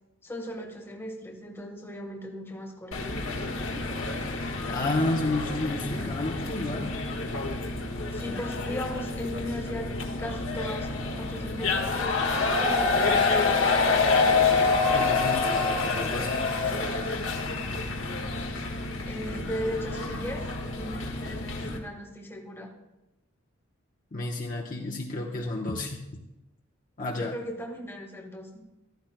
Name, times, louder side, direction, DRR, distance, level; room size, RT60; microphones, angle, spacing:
voice 1, 0.2-3.1 8.1-9.9 10.2-13.2 19.1-20.5 20.7-22.7 27.1-28.6, equal, 10° left, 2 dB, 1.4 m, -37 dB
sound 1, 2.9-21.8, left 3 dB, 75° left, 1.6 m, -27 dB
voice 2, 4.4-7.0 14.9-16.4 24.1-26.2 27.0-27.3, left 2 dB, 40° left, -1 dB, 1.0 m, -31 dB
15.0 x 13.0 x 2.2 m, 0.97 s
head